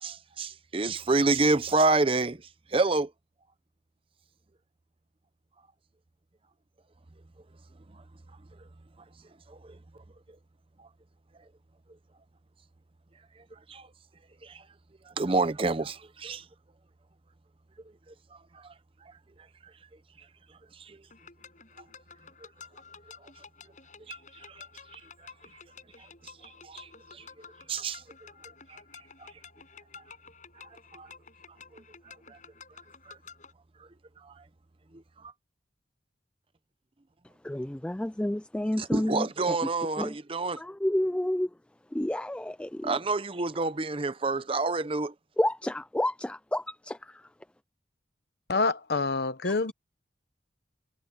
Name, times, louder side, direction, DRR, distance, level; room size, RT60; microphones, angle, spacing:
voice 1, 0.0-2.4 2.7-3.1 7.9-8.0 9.5-9.8 10.8-10.9 13.7-13.9 14.4-14.6 15.1-16.4 18.5-18.7 20.8-21.0 24.1-24.6 24.9-25.0 26.0-26.1 26.4-27.2 27.7-28.0 28.7-28.8 29.2-29.3 30.9-31.1 31.7-31.8 32.3-32.4 33.1-33.2 33.8-33.9 34.2-34.4 34.9-35.3 38.8-40.6 42.8-45.1, right 3 dB, 30° right, 0.7 m, -29 dB
sound 1, 21.1-33.5, left 5 dB, 45° left, 7.6 m, -51 dB
voice 2, 37.4-39.6 40.0-40.1 40.6-41.5 41.9-42.9 45.4-47.2 49.4-49.5, left 1 dB, 5° left, 0.3 m, -30 dB
voice 3, 48.5-49.7, left 3 dB, 60° left, 0.9 m, -27 dB
head